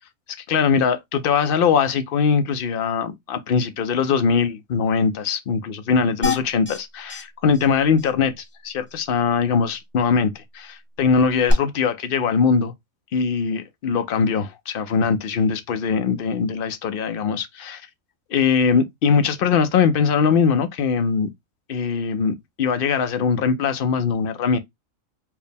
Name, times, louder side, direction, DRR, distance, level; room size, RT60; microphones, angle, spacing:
voice 1, 0.5-12.7 13.1-17.8 18.3-21.3 21.7-24.6, left 6 dB, 55° left, 0.6 m, -21 dB
sound 1, 6.2-6.8 7.1-7.2 7.5-7.7 8.0-8.1 11.5-11.6, left 4 dB, 10° left, 0.6 m, -25 dB
4.6 x 2.0 x 3.4 m
omnidirectional pair, 1.4 m